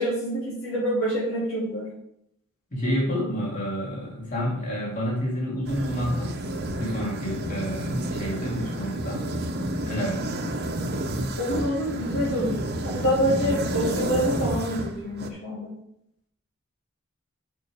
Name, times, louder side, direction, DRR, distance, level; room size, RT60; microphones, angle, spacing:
voice 1, 0.0-1.9 11.4-15.7, equal, 85° left, -9 dB, 3.5 m, -26 dB
voice 2, 2.7-6.4 6.8-9.3 9.8-10.5, equal, 40° left, -4 dB, 2.6 m, -29 dB
sound 1, 5.7-15.3, right 1 dB, 50° right, 0.9 m, -30 dB
7.5 x 6.0 x 4.8 m, 0.75 s
head